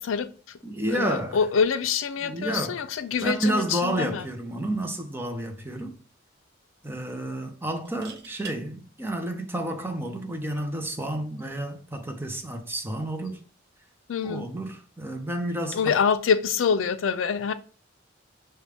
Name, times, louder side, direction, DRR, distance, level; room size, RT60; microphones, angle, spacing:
voice 1, 0.0-0.6 0.9-4.2 14.1-14.5 15.7-17.5, left 6 dB, 80° left, 0.4 m, -25 dB
voice 2, 0.6-1.4 2.2-2.8 3.2-6.0 6.8-13.4 14.2-16.0, right 1 dB, 10° right, 0.6 m, -30 dB
sound 1, 7.8-8.6 10.4-10.6, right 6 dB, 55° right, 0.6 m, -44 dB
6.4 x 2.2 x 3.4 m
head